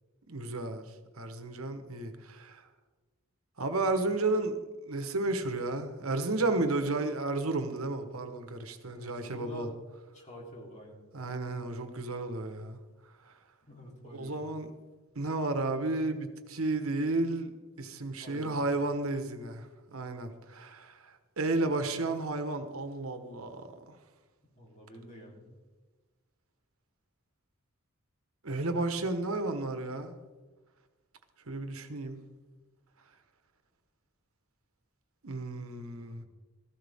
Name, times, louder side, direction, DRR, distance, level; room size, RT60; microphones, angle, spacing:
voice 1, 0.3-0.8 1.2-2.6 3.6-9.7 11.1-12.8 14.1-14.7 15.1-21.0 21.4-24.0 28.4-30.1 31.5-32.2 35.2-36.2, right 2 dB, 80° right, 7 dB, 1.4 m, -32 dB
voice 2, 8.9-9.7 10.1-11.0 13.7-14.4 18.2-18.6 24.5-25.5 36.0-36.2, equal, 35° left, -2 dB, 3.6 m, -47 dB
17.0 x 15.0 x 3.7 m, 1.3 s
head